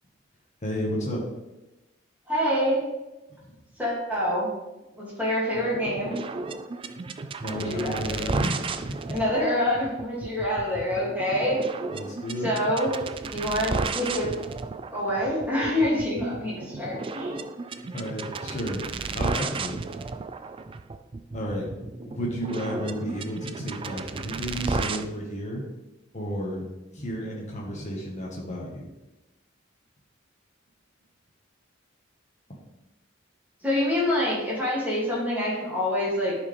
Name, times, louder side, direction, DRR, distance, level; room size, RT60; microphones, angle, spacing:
voice 1, 0.6-1.2 3.4-3.5 7.4-9.0 11.9-12.5 17.9-18.8 19.1-19.8 21.3-21.7 22.0-25.6 26.1-26.6 26.9-28.9, equal, 40° left, -3 dB, 1.4 m, -32 dB
voice 2, 2.3-2.8 3.8-4.5 4.9-6.1 7.5-8.2 9.1-11.6 12.4-12.9 13.2-14.3 14.9-17.4 33.6-36.4, left 1 dB, 10° right, -7 dB, 2.4 m, -26 dB
sound 1, 5.5-25.0, right 4 dB, 25° right, 0.3 m, -34 dB
11.0 x 4.8 x 3.4 m, 1.0 s
head